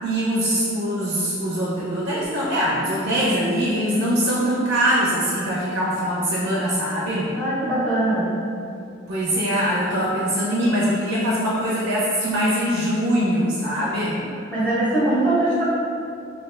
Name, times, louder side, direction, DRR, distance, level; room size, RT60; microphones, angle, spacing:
voice 1, 0.0-7.3 9.1-14.3, equal, 75° right, -6 dB, 0.4 m, -22 dB
voice 2, 7.3-8.3 14.5-15.6, right 1 dB, 5° left, -10 dB, 0.6 m, -21 dB
2.3 x 2.2 x 3.1 m, 2.5 s
head